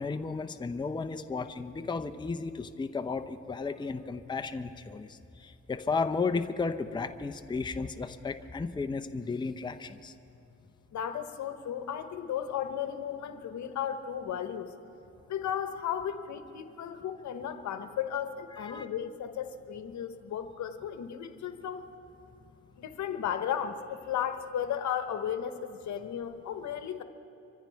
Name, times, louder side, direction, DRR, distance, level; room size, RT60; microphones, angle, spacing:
voice 1, 0.0-5.1 5.4-10.1 18.6-18.9, left 4 dB, 15° left, 8 dB, 0.6 m, -34 dB
voice 2, 10.9-14.7 15.3-21.9 22.8-27.0, left 9 dB, 70° left, 9 dB, 1.1 m, -35 dB
25.0 x 14.5 x 3.5 m, 2.8 s
cardioid pair, 90°, 30 cm